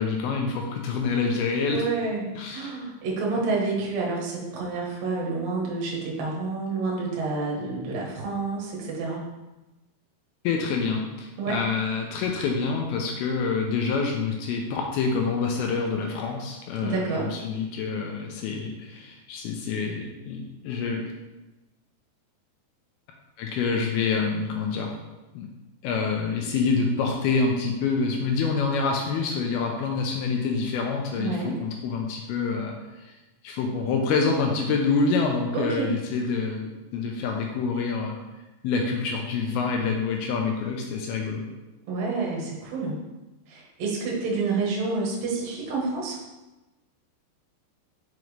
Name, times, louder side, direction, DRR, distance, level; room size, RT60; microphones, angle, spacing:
voice 1, 0.0-1.8 2.4-2.7 10.4-21.0 23.4-24.9 25.4-25.5 25.8-33.1 33.4-38.2 38.6-41.4, left 4 dB, 80° left, 1 dB, 2.4 m, -27 dB
voice 2, 1.7-9.2 11.4-11.6 16.8-17.3 31.2-31.6 35.5-36.0 41.9-43.0 43.5-46.2, right 3 dB, 60° right, -3 dB, 2.1 m, -29 dB
5.9 x 5.2 x 3.2 m, 1.1 s
omnidirectional pair, 4.7 m